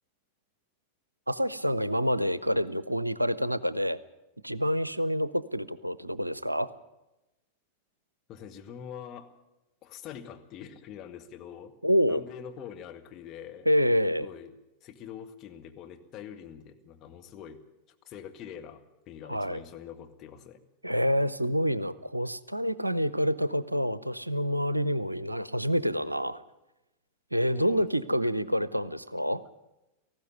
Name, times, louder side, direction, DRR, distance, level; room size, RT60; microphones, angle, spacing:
voice 1, 1.3-4.0 4.4-6.7 11.8-12.2 13.7-14.3 19.3-19.6 20.8-26.4 27.3-29.4, equal, 85° right, 18 dB, 0.6 m, -27 dB
voice 2, 8.3-9.3 9.8-11.7 12.1-13.7 14.2-14.5 14.8-17.6 18.1-20.6 27.5-27.9, left 8 dB, 35° left, 4 dB, 1.8 m, -44 dB
18.5 x 15.0 x 9.6 m, 0.98 s
figure-of-eight pair, 90°, 0 cm